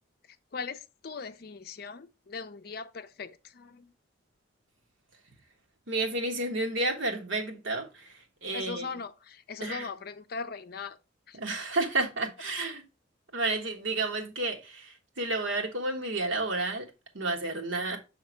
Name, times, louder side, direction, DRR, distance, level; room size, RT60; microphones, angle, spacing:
voice 1, 0.3-3.9 8.5-11.0 11.3-11.4, left 5 dB, 50° left, 0.5 m, -40 dB
voice 2, 5.9-8.8 9.6-9.9 11.3-12.9 13.3-18.0, right 2 dB, 75° right, 1.4 m, -31 dB
6.0 x 3.6 x 4.4 m
head